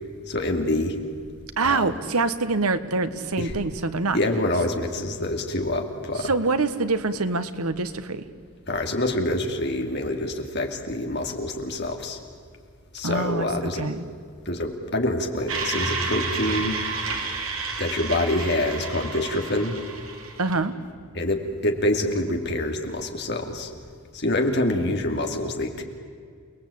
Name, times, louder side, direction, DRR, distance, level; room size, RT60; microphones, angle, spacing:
voice 1, 0.3-1.0 1.6-1.9 3.4-3.6 4.1-6.3 8.7-12.2 12.9-13.9 14.5-16.8 17.8-19.7 21.1-23.7 24.1-25.8, left 1 dB, 50° left, 3 dB, 2.6 m, -26 dB
voice 2, 1.6-4.2 6.2-8.2 13.0-13.5 13.8-14.0 20.4-20.7, right 3 dB, 90° right, 11 dB, 1.4 m, -25 dB
sound 1, 15.5-20.5, right 4 dB, 70° right, 2.8 m, -30 dB
29.0 x 20.0 x 8.6 m, 2.1 s
head